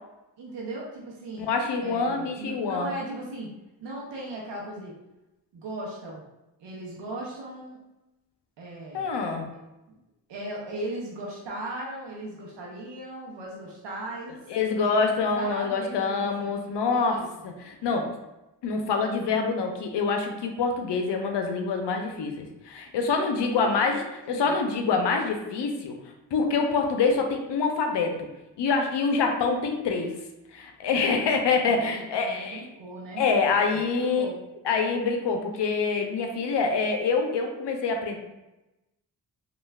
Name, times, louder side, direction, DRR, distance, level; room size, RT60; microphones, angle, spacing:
voice 1, 0.4-1.5 1.8-3.5 3.8-4.9 5.5-6.3 6.6-7.8 8.6-9.0 9.9-10.0 10.3-14.4 15.4-17.5 23.5-24.6 31.7-34.4, right 1 dB, 80° right, -2 dB, 0.7 m, -38 dB
voice 2, 1.4-2.9 8.9-9.5 14.5-18.2 18.6-24.0 24.3-25.9 26.3-28.3 28.6-30.1 30.5-32.6 33.2-34.3 34.6-38.2, left 4 dB, 70° left, 3 dB, 0.6 m, -26 dB
3.1 x 2.4 x 2.3 m, 0.97 s
cardioid pair, 50°, 43 cm